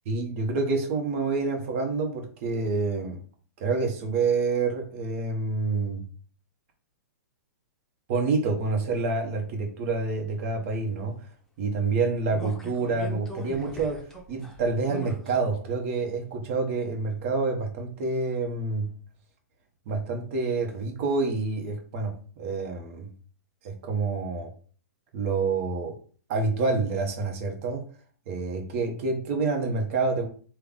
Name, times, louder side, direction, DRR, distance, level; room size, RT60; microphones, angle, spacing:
voice 1, 0.0-3.2 3.6-6.0 8.1-11.1 11.6-14.0 14.3-18.9 19.9-23.1 23.6-24.5 25.1-25.9 26.3-27.8 28.3-30.3, right 3 dB, 45° right, 3 dB, 1.0 m, -27 dB
sound 1, 12.3-15.4 15.8-15.9, right 2 dB, 5° left, 0.8 m, -40 dB
3.4 x 2.3 x 3.8 m, 0.43 s
hypercardioid pair, 120°, 9 cm